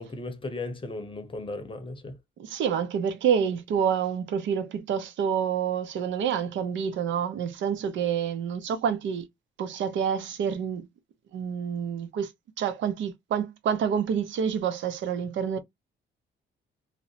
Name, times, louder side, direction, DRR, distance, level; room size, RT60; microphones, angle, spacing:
voice 1, 0.0-2.2, left 2 dB, 25° left, 0.7 m, -36 dB
voice 2, 2.4-9.3 9.6-10.9 11.3-12.3 12.6-15.6, right 7 dB, 70° right, 0.5 m, -28 dB
2.6 x 2.0 x 2.7 m
cardioid pair, 90°, 20 cm